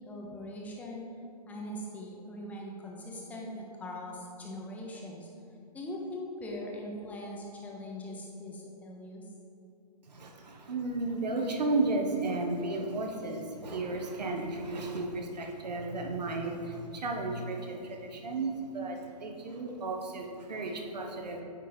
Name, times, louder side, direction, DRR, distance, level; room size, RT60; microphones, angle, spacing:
voice 1, 0.1-1.0 1.5-3.5 3.8-5.3 5.7-9.2, left 1 dB, 5° left, -2 dB, 0.6 m, -41 dB
voice 2, 10.1-21.4, right 2 dB, 75° right, 2 dB, 0.9 m, -33 dB
9.2 x 3.1 x 3.9 m, 2.5 s
hypercardioid pair, 140°, 21 cm